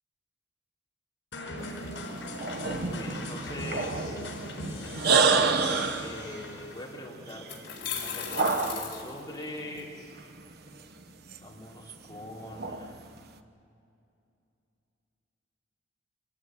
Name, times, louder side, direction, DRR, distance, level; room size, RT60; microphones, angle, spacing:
sound 1, 1.3-7.0, left 1 dB, 85° left, 4.8 m, -39 dB
sound 2, 1.6-9.2 10.0-11.4 11.7-13.1, right 4 dB, 60° right, 1.0 m, -29 dB
voice 1, 2.8-4.2 6.0-9.9 11.4-13.0, left 1 dB, 20° left, -4 dB, 3.8 m, -42 dB
sound 3, 6.6-6.7 7.3-9.8, left 7 dB, 65° left, 4.4 m, -37 dB
25.5 x 15.5 x 9.3 m, 2.6 s
head